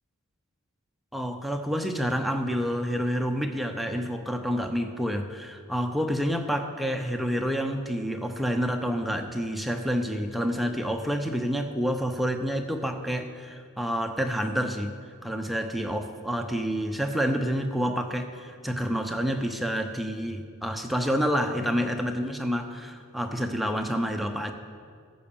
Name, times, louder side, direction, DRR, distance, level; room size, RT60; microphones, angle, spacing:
voice 1, 1.1-14.9 15.2-24.5, equal, ahead, 4 dB, 0.5 m, -28 dB
14.0 x 5.2 x 7.0 m, 2.1 s
head